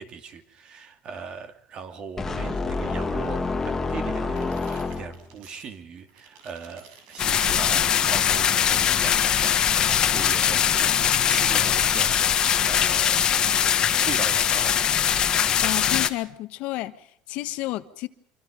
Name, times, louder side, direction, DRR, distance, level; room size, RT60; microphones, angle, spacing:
voice 1, 0.0-13.4 14.0-14.8, right 6 dB, 35° right, 2.6 m, -39 dB
sound 1, 2.2-5.4, left 3 dB, 15° left, 2.0 m, -28 dB
sound 2, 4.3-5.7 6.0-7.3 8.1-10.8, right 6 dB, 80° right, 7.2 m, -51 dB
sound 3, 7.2-16.1, left 9 dB, 30° left, 1.6 m, -21 dB
voice 2, 15.6-18.1, left 17 dB, 60° left, 1.3 m, -31 dB
26.5 x 25.0 x 5.2 m
cardioid pair, 150°, 2 cm